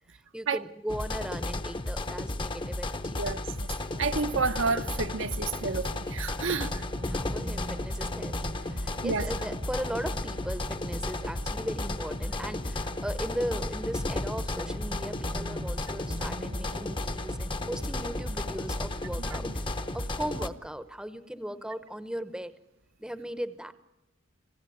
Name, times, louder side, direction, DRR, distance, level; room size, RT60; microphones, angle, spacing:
voice 1, 0.1-3.2 7.0-22.5 23.0-23.7, equal, 5° right, 0.8 m, -38 dB
sound 1, 0.9-20.5, left 2 dB, 25° left, 0.8 m, -33 dB
voice 2, 3.2-3.7 4.0-6.8 9.0-9.3 19.2-19.5, right 4 dB, 70° right, 0.9 m, -30 dB
Race car auto racing, 3.9-20.5, right 1 dB, 35° right, 0.8 m, -45 dB
sound 2, 5.8-19.9, equal, 85° left, 7.4 m, -54 dB
27.0 x 17.0 x 9.2 m
head